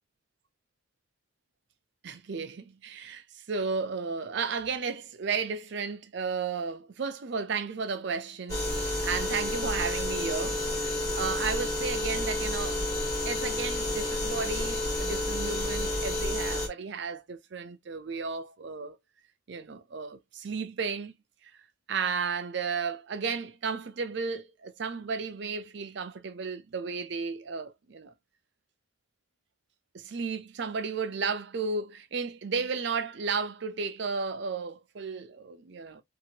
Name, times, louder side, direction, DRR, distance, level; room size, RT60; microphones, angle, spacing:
voice 1, 2.0-12.8 13.2-19.0 19.5-21.1 21.9-28.1 29.9-36.0, right 5 dB, 55° right, 0.5 m, -33 dB
sound 1, 8.5-16.7, left 1 dB, 20° left, 1.2 m, -30 dB
2.8 x 2.6 x 2.7 m
head